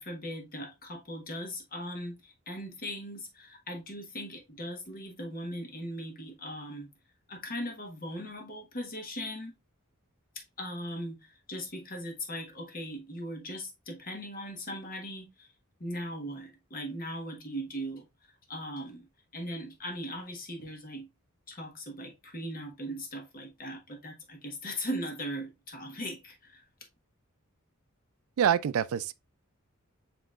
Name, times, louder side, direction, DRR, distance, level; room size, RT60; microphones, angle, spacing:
voice 1, 0.0-6.9 7.3-9.5 10.3-15.5 15.8-18.1 18.5-19.1 19.3-21.1 21.5-26.6, equal, 45° left, 1.2 m, -39 dB
voice 2, 28.4-29.1, right 8 dB, 75° right, 0.4 m, -26 dB
7.6 x 2.9 x 2.4 m
head